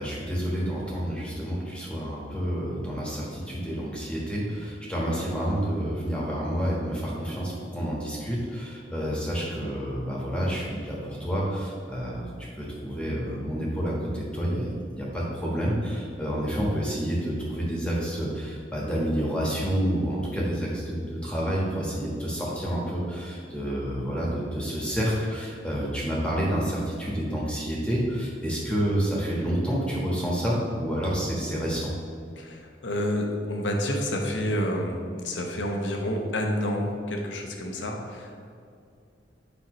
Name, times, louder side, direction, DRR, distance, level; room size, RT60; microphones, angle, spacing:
voice 1, 0.0-12.3 12.6-31.9, equal, 5° left, -5 dB, 1.4 m, -29 dB
voice 2, 32.4-38.4, left 1 dB, 85° left, 2 dB, 1.0 m, -29 dB
8.3 x 5.5 x 3.1 m, 2.5 s
head